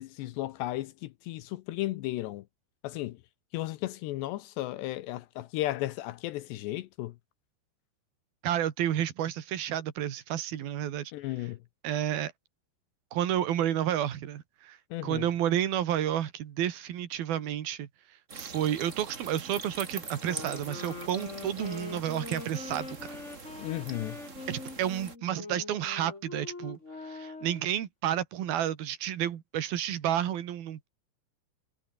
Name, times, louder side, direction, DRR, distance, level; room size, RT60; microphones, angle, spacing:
voice 1, 0.0-2.4 2.8-3.2 3.5-7.1 11.1-11.6 14.9-15.3 23.6-24.2, left 16 dB, 80° left, 2.5 m, -34 dB
voice 2, 8.4-11.1 11.8-12.3 13.1-14.8 15.0-17.9 18.3-23.2 24.5-26.8 27.0-30.9, right 11 dB, 55° right, 3.1 m, -31 dB
sound 1, 18.3-25.1, right 4 dB, 75° right, 0.7 m, -44 dB
sound 2, 20.2-27.7, left 3 dB, 20° left, 2.1 m, -43 dB
omnidirectional pair, 5.9 m